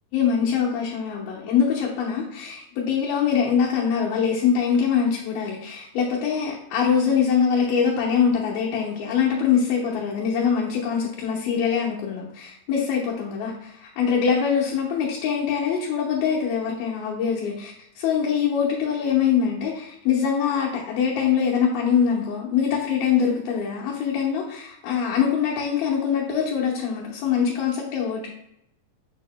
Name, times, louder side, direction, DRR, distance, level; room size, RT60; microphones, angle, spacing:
voice 1, 0.1-28.3, left 7 dB, 85° left, -5 dB, 3.0 m, -23 dB
7.2 x 7.1 x 2.2 m, 0.78 s
omnidirectional pair, 4.1 m